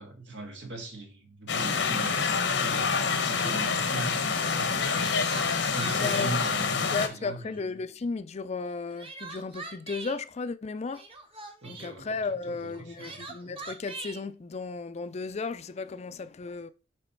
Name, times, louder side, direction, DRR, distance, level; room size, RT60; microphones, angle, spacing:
voice 1, 0.0-5.1 5.7-7.6 11.6-13.3, right 2 dB, 80° right, 1.7 m, -40 dB
sound 1, 1.5-7.1, left 5 dB, 80° left, 1.0 m, -27 dB
Crying sobbing, 2.4-3.5 4.7-6.3 6.8-7.6 8.7-10.2 10.9-11.9 12.7-14.2, right 3 dB, 30° right, 1.0 m, -42 dB
voice 2, 5.9-6.3 6.9-11.0 11.7-16.7, left 4 dB, 35° left, 0.4 m, -34 dB
7.8 x 3.4 x 4.4 m
head